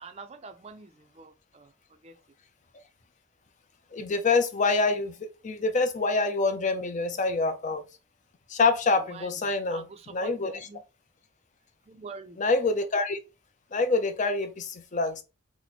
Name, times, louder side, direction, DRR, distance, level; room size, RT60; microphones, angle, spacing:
voice 1, 0.0-1.7 2.0-2.2 9.0-9.4 9.7-10.8 11.9-12.4, right 4 dB, 30° right, 0.4 m, -45 dB
voice 2, 3.9-7.8 8.5-9.8 10.1-10.5 12.4-13.2 13.7-15.2, left 3 dB, 35° left, 0.4 m, -26 dB
2.9 x 2.1 x 4.1 m
head